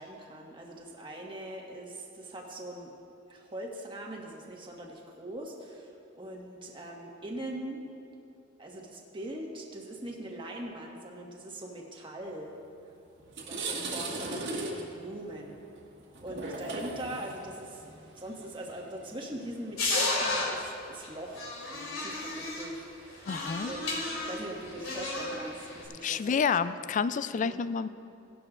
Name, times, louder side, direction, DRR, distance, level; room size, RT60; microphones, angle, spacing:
voice 1, 0.0-2.9 3.3-7.8 8.6-12.5 13.5-15.6 16.2-26.8 27.4-27.6, right 1 dB, 25° right, -1 dB, 1.4 m, -42 dB
sound 1, 12.7-12.8 13.2-20.5, right 2 dB, 60° right, 1.6 m, -38 dB
sound 2, 19.8-20.6 21.0-21.1 21.3-22.7 23.2-25.8, left 2 dB, 85° left, 2.6 m, -32 dB
voice 2, 23.3-23.7 26.0-27.9, left 6 dB, 40° left, 14 dB, 0.3 m, -29 dB
17.5 x 11.5 x 2.4 m, 2.8 s
head